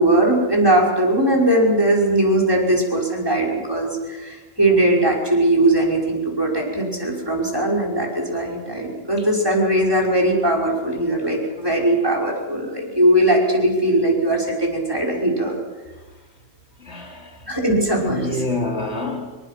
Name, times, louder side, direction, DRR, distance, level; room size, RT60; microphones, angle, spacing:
voice 1, 0.0-15.6 17.5-18.4, right 1 dB, 20° right, 5.4 m, -19 dB
voice 2, 16.8-17.5 18.0-19.4, left 2 dB, 85° left, 3.6 m, -27 dB
26.0 x 22.5 x 6.0 m
omnidirectional pair, 1.1 m